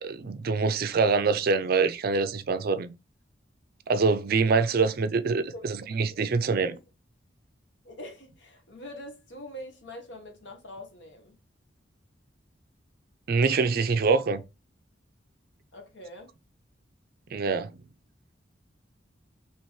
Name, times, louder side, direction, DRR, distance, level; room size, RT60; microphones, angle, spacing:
voice 1, 0.0-2.9 3.9-6.7 13.3-14.4 17.3-17.7, right 4 dB, 55° right, 0.4 m, -25 dB
voice 2, 6.5-6.8 7.8-11.4 15.7-16.3, equal, 70° left, 1.4 m, -43 dB
4.4 x 3.0 x 3.1 m
head